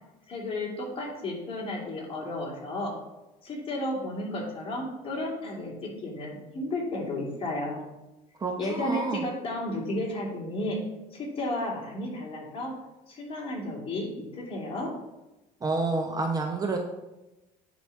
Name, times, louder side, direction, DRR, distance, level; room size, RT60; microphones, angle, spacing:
voice 1, 0.3-2.9 3.4-7.8 8.6-10.8 11.1-12.7 13.1-14.9, left 1 dB, 35° left, -2 dB, 2.8 m, -33 dB
voice 2, 8.4-9.3 15.6-16.8, right 3 dB, 25° right, 3 dB, 0.8 m, -29 dB
9.7 x 4.1 x 4.7 m, 1.0 s
cardioid pair, 125°, 16 cm